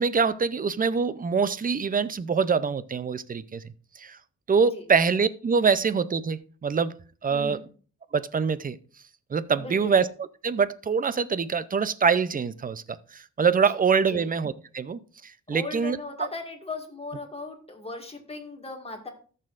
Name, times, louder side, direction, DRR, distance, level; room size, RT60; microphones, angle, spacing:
voice 1, 0.0-3.6 4.0-4.2 4.5-7.6 8.1-8.8 9.3-10.1 10.4-16.0, right 5 dB, 30° right, 0.5 m, -25 dB
voice 2, 7.3-7.6 9.6-10.0 14.1-14.3 15.5-19.1, left 2 dB, 20° left, 1.8 m, -37 dB
14.0 x 6.7 x 2.5 m
cardioid pair, 105°, 31 cm